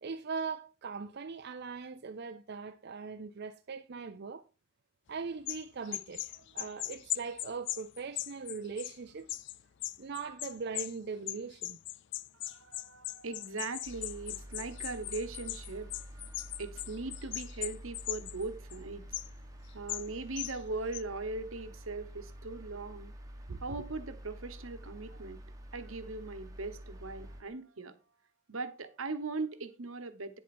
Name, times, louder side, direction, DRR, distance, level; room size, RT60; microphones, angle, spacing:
voice 1, 0.0-4.4 5.1-9.4 10.0-11.8 23.5-23.6, right 5 dB, 55° right, 0.5 m, -40 dB
sound 1, 5.5-11.0 11.3-18.4 18.7-18.8 19.1-19.3 19.9-20.1 20.4-20.6 20.9-21.0, left 16 dB, 60° left, 0.4 m, -39 dB
voice 2, 12.4-19.0 19.7-23.1 23.6-25.4 25.7-27.9 28.5-30.4, right 3 dB, 80° right, 1.2 m, -40 dB
sound 2, 13.9-27.4, equal, 15° right, 1.2 m, -48 dB
9.7 x 7.5 x 4.4 m
head